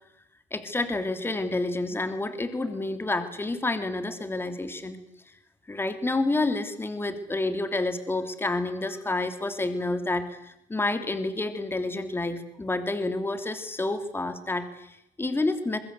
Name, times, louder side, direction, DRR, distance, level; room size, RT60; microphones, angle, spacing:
voice 1, 0.5-5.0 5.7-15.8, left 2 dB, 15° left, 9 dB, 3.0 m, -29 dB
25.5 x 21.5 x 8.2 m, 0.83 s
supercardioid pair, 80°, 15 cm